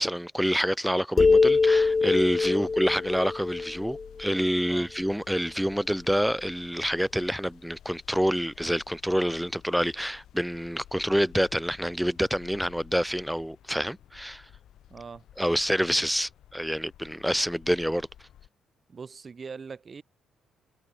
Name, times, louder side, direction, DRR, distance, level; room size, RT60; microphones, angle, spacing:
voice 1, 0.0-14.5 15.4-18.1, equal, ahead, 0.9 m, -27 dB
sound 1, 1.2-4.7, left 4 dB, 30° left, 0.5 m, -23 dB
sound 2, 1.4-18.5, left 11 dB, 75° left, 5.7 m, -53 dB
voice 2, 14.9-15.2 18.9-20.0, right 5 dB, 40° right, 3.8 m, -42 dB
cardioid pair, 90°, 0 cm